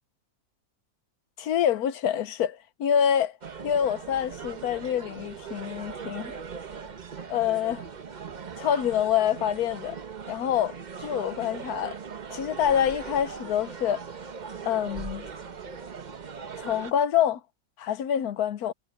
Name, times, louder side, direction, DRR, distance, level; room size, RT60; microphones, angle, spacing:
voice 1, 1.4-3.4 3.6-6.3 7.3-7.8 8.6-10.0 10.3-12.0 12.3-14.0 14.6-15.2 16.6-17.4 17.8-18.7, left 9 dB, 80° left, 1.3 m, -26 dB
sound 1, 3.4-16.9, right 6 dB, 35° right, 0.8 m, -40 dB
omnidirectional pair, 1.6 m